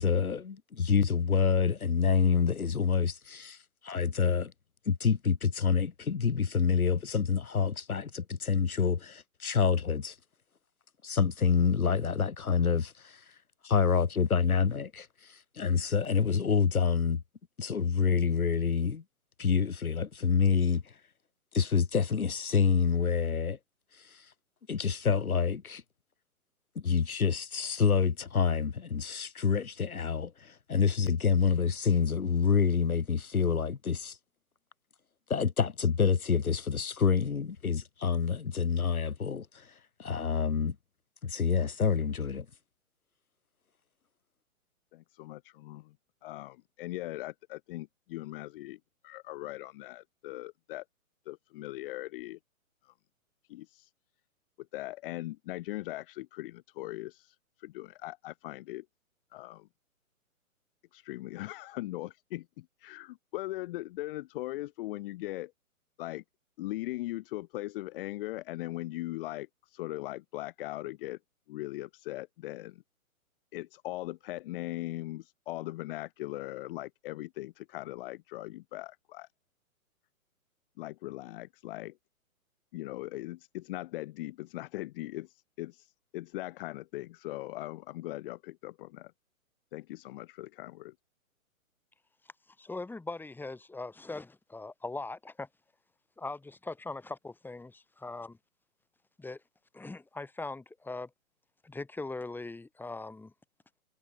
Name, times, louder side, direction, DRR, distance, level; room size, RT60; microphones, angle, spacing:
voice 1, 0.0-3.6 3.8-4.5 4.9-10.1 11.0-13.2 13.6-17.2 17.6-19.0 19.4-20.8 21.5-23.6 24.1-24.2 24.7-25.8 26.8-34.2 35.3-39.7 40.0-40.7 41.2-42.5, left 6 dB, 80° left, 6.3 m, -27 dB
voice 2, 44.9-45.9 46.2-50.8 51.2-52.4 52.8-52.9 53.5-53.9 54.7-58.8 59.3-59.7 60.9-65.5 66.0-66.2 66.6-71.2 71.5-72.8 73.5-79.3 80.8-82.0 82.7-89.1 89.7-90.9, left 17 dB, 40° left, 4.7 m, -40 dB
voice 3, 92.6-95.5 96.2-98.4 99.2-99.4 99.7-101.1 101.6-103.3, left 3 dB, 5° left, 7.6 m, -40 dB
hypercardioid pair, 140°, 43 cm